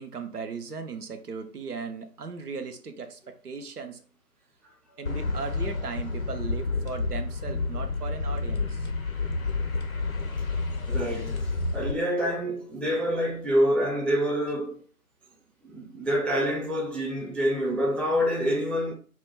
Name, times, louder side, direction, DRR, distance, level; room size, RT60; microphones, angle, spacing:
voice 1, 0.0-4.1 5.0-8.9, right 5 dB, 75° right, 0.6 m, -37 dB
sound 1, 5.1-11.9, left 3 dB, 60° left, 0.5 m, -30 dB
voice 2, 10.9-14.8 15.6-18.9, equal, 5° left, 0.3 m, -27 dB
2.2 x 2.2 x 3.2 m
figure-of-eight pair, 160°, 47 cm